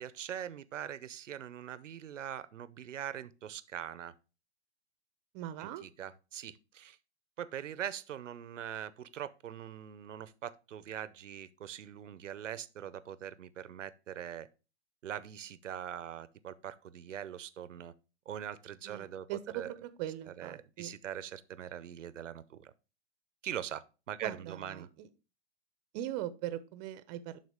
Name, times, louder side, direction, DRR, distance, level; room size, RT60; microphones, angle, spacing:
voice 1, 0.0-4.1 5.6-7.0 7.4-14.5 15.0-17.9 18.3-19.7 20.3-22.7 23.4-24.9, right 10 dB, 85° right, 0.7 m, -42 dB
voice 2, 5.3-5.8 18.8-20.9 24.2-25.1 25.9-27.4, right 12 dB, 35° right, 0.7 m, -40 dB
11.0 x 3.9 x 3.7 m
hypercardioid pair, 125°, 36 cm